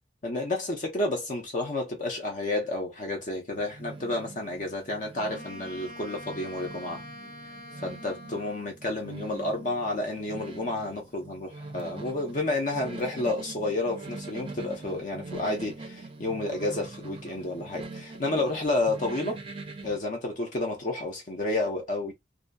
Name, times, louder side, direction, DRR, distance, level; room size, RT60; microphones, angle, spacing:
voice 1, 0.2-7.0 7.8-19.4 19.8-22.1, left 2 dB, 45° left, 0.6 m, -30 dB
sound 1, 3.5-20.0, right 3 dB, 30° right, 0.5 m, -43 dB
Wind instrument woodwind instrument, 5.2-8.8, equal, 80° left, 1.9 m, -45 dB
2.6 x 2.5 x 2.2 m
head